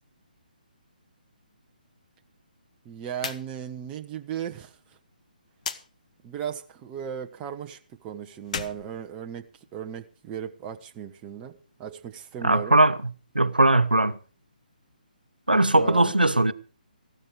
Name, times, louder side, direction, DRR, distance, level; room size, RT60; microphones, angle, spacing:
voice 1, 2.8-4.8 6.2-9.4 9.7-12.8 15.8-16.1, right 8 dB, 20° right, 1.0 m, -36 dB
slap to the face, 3.1-3.4 3.8-3.9 5.6-5.8 8.4-9.7, left 6 dB, 50° left, 1.1 m, -35 dB
voice 2, 12.4-13.0 13.3-14.1 15.5-16.5, right 2 dB, 85° right, 0.8 m, -19 dB
15.0 x 12.5 x 4.9 m
figure-of-eight pair, 140°, 5 cm